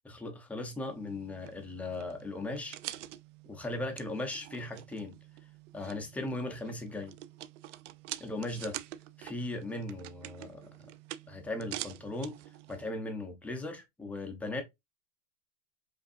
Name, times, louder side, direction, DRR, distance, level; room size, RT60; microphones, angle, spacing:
voice 1, 0.0-2.8 3.5-5.1 5.7-7.1 8.2-8.8 9.2-10.7 11.3-12.4 12.7-14.6, left 2 dB, 5° left, 0.6 m, -38 dB
sound 1, 0.8-12.9, right 14 dB, 65° right, 0.5 m, -46 dB
5.2 x 2.6 x 2.5 m
supercardioid pair, 140°, 39 cm